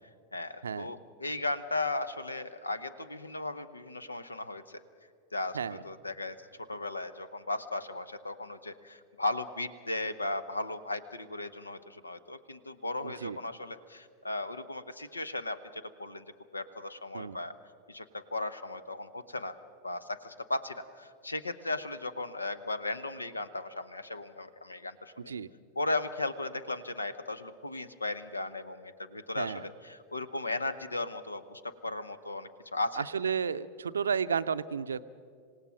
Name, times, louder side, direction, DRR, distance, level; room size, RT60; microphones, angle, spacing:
voice 1, 0.3-4.8 5.3-5.6 5.8-6.4 6.7-16.3 16.5-17.5 17.9-19.6 19.8-25.4 25.8-33.0, left 2 dB, 80° left, 15 dB, 0.9 m, -36 dB
voice 2, 13.0-13.4 17.1-17.4 25.2-25.5 29.3-29.7 33.0-35.1, right 6 dB, 70° right, 14 dB, 0.5 m, -32 dB
26.5 x 17.5 x 6.0 m, 2.2 s
figure-of-eight pair, 90°, 0 cm